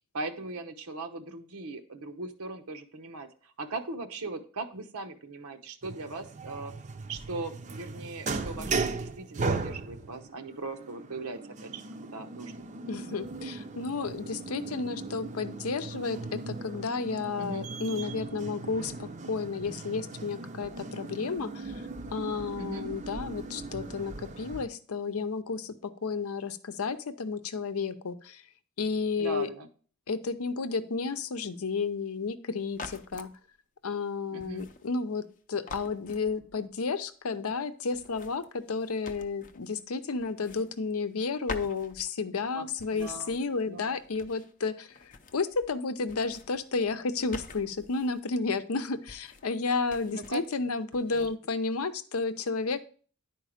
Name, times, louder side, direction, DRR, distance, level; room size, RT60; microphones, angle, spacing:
voice 1, 0.0-3.3 3.6-6.7 7.1-11.8 12.1-12.7 17.4-17.7 22.6-22.9 29.2-29.7 34.3-34.7 42.5-43.4 43.7-43.9 50.1-50.4 51.1-51.3, right 3 dB, 85° right, 6 dB, 0.9 m, -39 dB
sound 1, 5.8-24.7, right 3 dB, 35° right, 0.5 m, -38 dB
voice 2, 12.9-21.7 22.1-28.4 28.8-29.5 30.1-33.3 33.8-35.2 35.5-44.9 45.3-52.9, left 4 dB, 80° left, 11 dB, 0.7 m, -32 dB
sound 2, 32.7-33.4 34.4-35.4 35.7-36.7 37.9-39.8 40.2-41.2 41.5-42.4 42.8-44.6 44.9-45.8 46.0-48.2 49.1-49.6 49.9-50.5 50.9-51.3, left 3 dB, 35° left, 0.5 m, -46 dB
10.0 x 4.6 x 5.0 m, 0.43 s
head